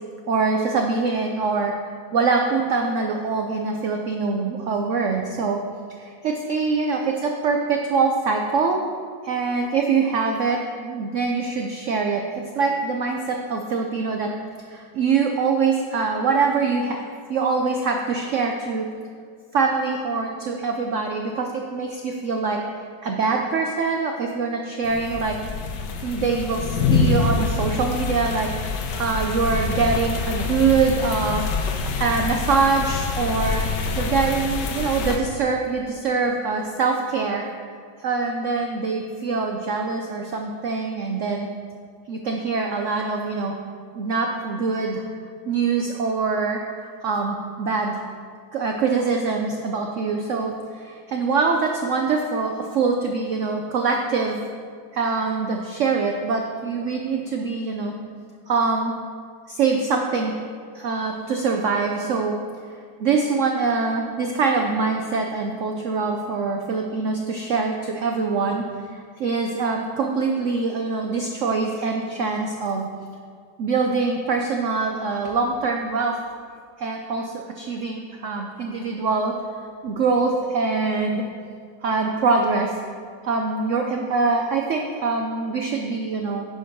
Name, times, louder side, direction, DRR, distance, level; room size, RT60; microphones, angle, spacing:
voice 1, 0.3-5.6 6.0-8.8 9.2-12.2 12.5-14.3 14.7-18.9 19.5-22.6 23.0-25.4 26.0-31.4 32.0-33.6 34.0-37.4 38.0-41.5 42.1-43.6 43.9-45.0 45.5-48.0 48.5-54.4 54.9-57.9 58.5-58.9 59.5-60.3 60.7-62.4 63.0-68.6 68.9-72.9 73.6-76.2 76.8-79.3 79.8-81.2 81.8-82.8 83.2-86.5, right 4 dB, 75° right, 2 dB, 0.7 m, -24 dB
sound 1, 24.8-35.2, left 4 dB, 75° left, 1.4 m, -26 dB
9.7 x 5.2 x 5.3 m, 2.1 s
omnidirectional pair, 2.0 m